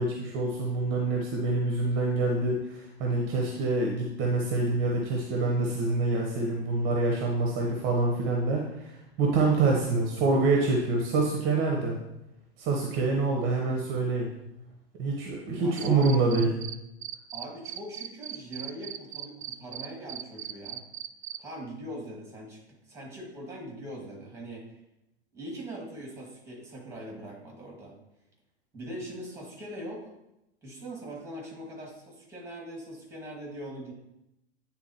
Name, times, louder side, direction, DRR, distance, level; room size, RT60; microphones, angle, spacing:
voice 1, 0.0-11.9 12.6-14.3 15.0-16.5, right 3 dB, 35° right, 0 dB, 1.0 m, -26 dB
voice 2, 15.5-16.1 17.3-20.8 21.4-24.6 25.3-27.9 28.7-30.1 30.6-33.9, right 1 dB, 10° right, -2 dB, 2.1 m, -41 dB
Cricket, 15.8-16.7 17.0-21.4, right 12 dB, 70° right, 0.5 m, -37 dB
9.5 x 3.7 x 3.0 m, 0.89 s
figure-of-eight pair, 95°, 33 cm